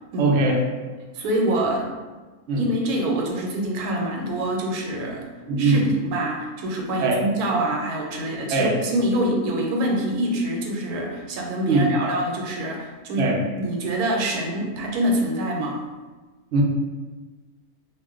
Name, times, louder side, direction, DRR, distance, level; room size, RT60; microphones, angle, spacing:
voice 1, 0.2-0.6 2.5-2.7 5.5-5.9 7.0-7.2 8.5-8.8 11.7-11.9 13.2-13.4 16.5-16.6, right 3 dB, 65° right, -1 dB, 0.7 m, -20 dB
voice 2, 1.1-1.9 2.6-5.3 5.6-15.8, right 1 dB, 85° right, 0 dB, 1.1 m, -25 dB
2.5 x 2.1 x 3.6 m, 1.3 s
omnidirectional pair, 1.5 m